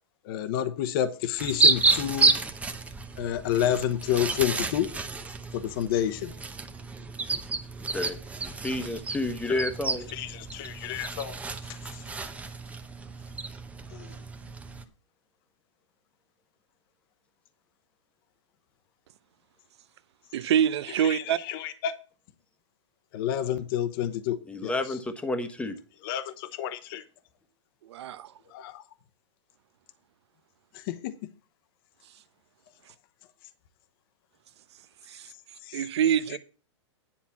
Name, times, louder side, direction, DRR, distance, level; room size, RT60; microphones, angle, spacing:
voice 1, 0.2-2.3 3.2-4.9 5.5-6.3 9.4-9.7 10.1-11.4 11.9-12.0 13.9-14.2 20.9-21.9 23.1-25.0 26.0-27.0 28.5-28.8 30.7-31.1 35.6-35.8 36.3-36.4, left 10 dB, 50° left, 1.0 m, -30 dB
sound 1, 1.4-14.8, right 3 dB, 10° right, 0.7 m, -30 dB
voice 2, 7.9-10.1 24.5-25.8, left 2 dB, 5° left, 1.1 m, -31 dB
voice 3, 20.3-21.4 27.9-28.3 35.1-35.3 35.7-36.4, right 9 dB, 65° right, 0.8 m, -25 dB
10.0 x 4.4 x 7.1 m
hypercardioid pair, 125°, 15 cm